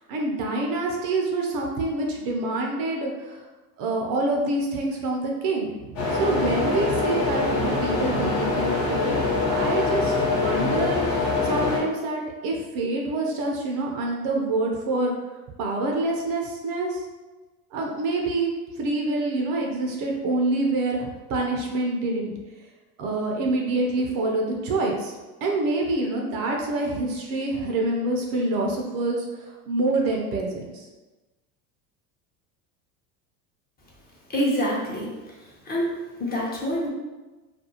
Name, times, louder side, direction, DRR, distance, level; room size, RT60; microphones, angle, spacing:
voice 1, 0.1-3.4 3.8-9.1 9.5-15.1 15.6-17.0 17.7-22.3 23.0-25.1 25.4-30.9, right 2 dB, 50° right, 0 dB, 0.6 m, -26 dB
sound 1, 6.0-11.8, left 3 dB, 50° left, 1.0 m, -24 dB
voice 2, 34.3-35.1 35.4-35.9 36.2-36.9, equal, 20° left, -5 dB, 0.7 m, -26 dB
2.5 x 2.3 x 2.8 m, 1.2 s
hypercardioid pair, 90°, 44 cm